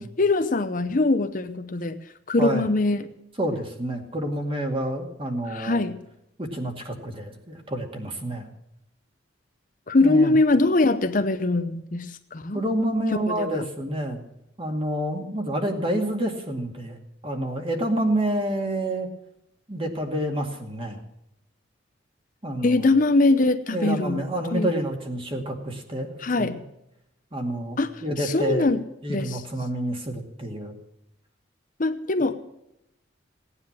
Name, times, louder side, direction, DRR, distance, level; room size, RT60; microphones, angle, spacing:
voice 1, 0.0-2.0 2.3-3.1 5.5-6.0 9.9-12.6 13.3-13.6 22.6-24.2 24.5-24.7 26.2-26.6 27.8-27.9 28.2-28.8 29.1-29.4 31.8-32.3, left 2 dB, 45° left, 9 dB, 0.8 m, -22 dB
voice 2, 3.4-5.8 6.4-8.5 10.0-10.3 12.5-14.3 14.6-17.0 17.2-19.1 19.7-21.0 22.4-22.8 23.7-26.6 27.3-28.7 29.0-30.7, right 1 dB, 30° right, 3 dB, 2.3 m, -28 dB
17.5 x 9.8 x 7.5 m, 0.85 s
head